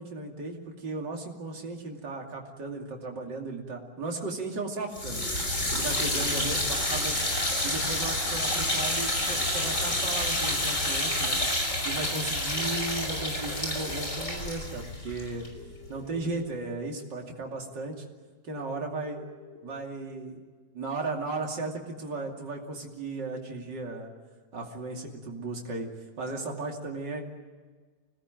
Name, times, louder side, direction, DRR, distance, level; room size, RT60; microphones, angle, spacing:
voice 1, 0.0-5.3 5.7-7.2 7.6-11.4 11.8-15.5 15.9-18.0 18.4-19.3 19.6-20.4 20.7-24.1 24.5-25.9 26.2-27.2, right 3 dB, 80° right, 0 dB, 3.4 m, -35 dB
sound 1, 4.9-16.0, left 1 dB, 45° left, 5.6 m, -29 dB
sound 2, 10.5-10.6 12.6-13.8 15.6-16.6 18.6-19.6, left 2 dB, 25° right, 4.8 m, -50 dB
26.0 x 19.0 x 9.1 m, 1.4 s
omnidirectional pair, 1.9 m